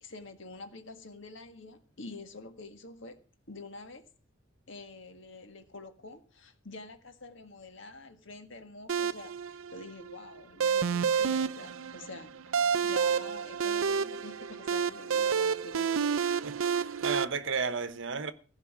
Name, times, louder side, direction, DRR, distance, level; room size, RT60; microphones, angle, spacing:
voice 1, 0.0-3.2 3.5-4.1 4.7-16.0, left 3 dB, 60° left, 1.7 m, -47 dB
sound 1, 8.9-17.2, right 6 dB, 75° right, 0.5 m, -29 dB
voice 2, 16.4-18.3, right 5 dB, 60° right, 1.0 m, -33 dB
15.5 x 5.5 x 8.7 m
head